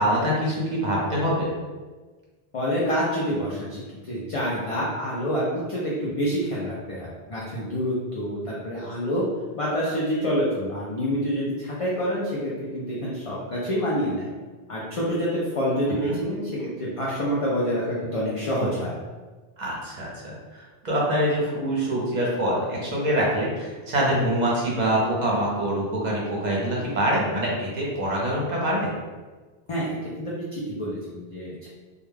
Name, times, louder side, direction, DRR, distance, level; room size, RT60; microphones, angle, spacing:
voice 1, 0.0-1.5 16.1-16.2 19.6-28.9, right 1 dB, 50° right, -4 dB, 0.7 m, -25 dB
voice 2, 2.5-9.2 9.6-14.3 14.7-19.0 29.7-31.7, equal, 50° left, -6 dB, 0.4 m, -27 dB
2.3 x 2.2 x 3.2 m, 1.3 s
omnidirectional pair, 1.1 m